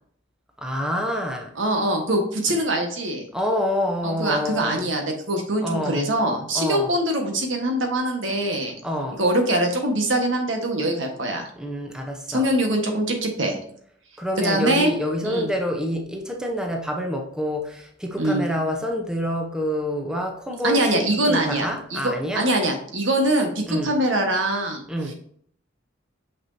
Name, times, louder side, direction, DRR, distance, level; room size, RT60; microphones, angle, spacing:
voice 1, 0.6-1.5 3.3-4.9 5.6-6.0 6.5-6.9 8.8-9.2 11.5-12.5 14.2-22.5 23.6-24.0 24.9-25.1, equal, 5° right, 2 dB, 0.8 m, -27 dB
voice 2, 1.5-3.3 4.0-8.7 9.2-11.5 12.3-13.6 14.4-14.9 15.2-15.5 18.2-18.4 20.6-24.8, right 1 dB, 75° right, 3 dB, 1.4 m, -23 dB
6.1 x 6.0 x 2.7 m, 0.64 s
head